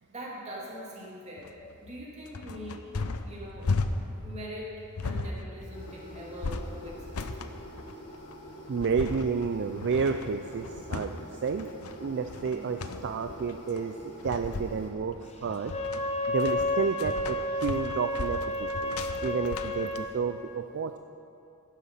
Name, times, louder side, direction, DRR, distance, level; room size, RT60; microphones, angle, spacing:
voice 1, 0.1-2.8 3.2-3.7 4.2-7.3 12.4-12.8, equal, 30° right, -5 dB, 2.8 m, -42 dB
sound 1, 1.4-20.0, left 3 dB, 80° left, 0.7 m, -36 dB
sound 2, 5.7-14.9, equal, 55° left, 2.1 m, -46 dB
voice 2, 8.7-11.7 12.0-15.7 16.3-21.0, right 5 dB, 55° right, 8 dB, 0.4 m, -31 dB
Wind instrument woodwind instrument, 15.6-20.1, left 1 dB, 30° left, 0.8 m, -31 dB
12.0 x 10.5 x 5.7 m, 2.7 s
head